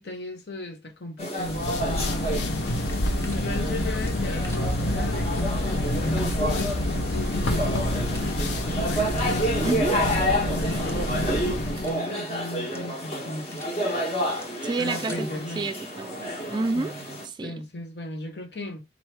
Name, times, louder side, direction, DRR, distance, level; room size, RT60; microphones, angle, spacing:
voice 1, 0.0-2.6 2.9-13.6 14.8-15.6 16.7-18.8, left 2 dB, 65° left, 1.0 m, -37 dB
sound 1, 1.2-17.3, equal, 35° left, 1.2 m, -30 dB
sound 2, 1.4-11.9, left 1 dB, 85° left, 0.6 m, -27 dB
sound 3, 2.8-3.4 3.9-4.6 5.3-5.4 5.8-6.0 6.5-6.7 7.5-7.7 8.1-8.3 9.0-9.5 10.0-10.2 10.7-10.9 11.3-11.4 11.8-12.0 12.6-12.8 13.3-13.7 14.3-14.5 14.8-15.2, left 1 dB, 15° left, 0.7 m, -46 dB
voice 2, 9.6-10.0 14.6-15.3 15.6-17.0 17.2-17.5, right 3 dB, 25° right, 0.3 m, -29 dB
3.9 x 3.0 x 3.3 m
head